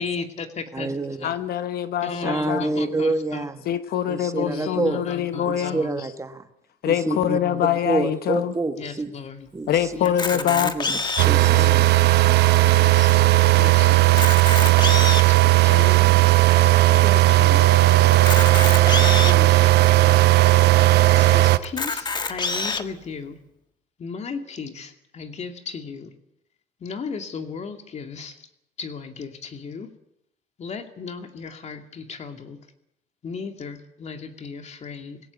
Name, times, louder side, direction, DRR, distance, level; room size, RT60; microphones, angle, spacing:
voice 1, 0.0-0.9 1.2-1.3 2.0-3.4 4.3-6.0 7.0-7.8 8.8-9.5 10.0-10.7 11.5-14.2 15.3-15.4 15.6-16.1 16.8-17.7 19.1-20.0 21.1-23.4 24.0-26.1 26.8-28.3 28.8-29.9 30.6-32.6 33.2-35.2, left 5 dB, 40° left, 6 dB, 2.5 m, -35 dB
voice 2, 0.7-1.3 2.2-3.6 4.1-5.0 5.5-6.4 6.9-7.4 7.8-9.1 9.5-9.9 10.6-11.9, right 3 dB, 20° right, 8 dB, 1.5 m, -27 dB
voice 3, 1.2-2.7 3.7-5.8 6.8-8.5 9.7-10.7, left 10 dB, 65° left, 11 dB, 1.0 m, -24 dB
Camera, 10.1-11.4 12.1-12.2 12.4-12.5 13.1-13.2 14.0-15.4 16.0-16.1 18.1-19.4 20.1-20.2 20.4-20.5 21.6-22.8, left 4 dB, 25° left, 1.6 m, -26 dB
sound 1, 11.2-21.6, right 17 dB, 80° right, 1.0 m, -16 dB
20.5 x 17.0 x 8.3 m, 0.78 s
cardioid pair, 110°, 17 cm